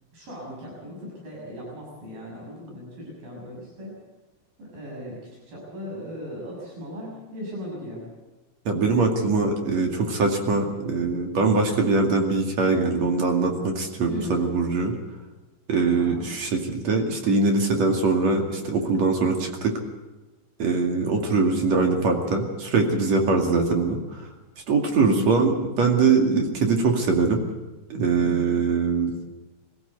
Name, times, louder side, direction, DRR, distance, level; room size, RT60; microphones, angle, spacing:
voice 1, 0.1-3.9 4.6-5.2 5.5-8.0 14.1-14.4 15.9-16.3 25.0-25.3 28.2-28.6, left 1 dB, 65° right, -4 dB, 8.6 m, -37 dB
voice 2, 8.6-14.9 15.7-19.7 20.6-24.0 24.7-27.4 27.9-29.1, right 4 dB, 50° right, 2 dB, 3.3 m, -22 dB
22.5 x 16.0 x 8.1 m, 1.1 s
omnidirectional pair, 4.4 m